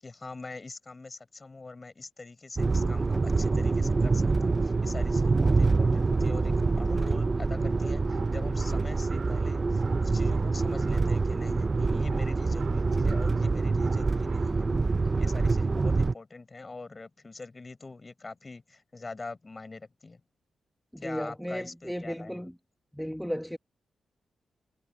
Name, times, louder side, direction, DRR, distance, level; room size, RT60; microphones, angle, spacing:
voice 1, 0.0-14.7 15.2-20.2 21.0-22.3, left 3 dB, 30° left, 7.0 m, -44 dB
sound 1, 2.6-16.1, right 3 dB, 30° right, 0.4 m, -26 dB
sound 2, 7.5-14.5, right 6 dB, 60° right, 3.2 m, -48 dB
voice 2, 20.9-22.6 22.9-23.6, equal, ahead, 1.1 m, -35 dB
wide cardioid pair, 115°, 0 cm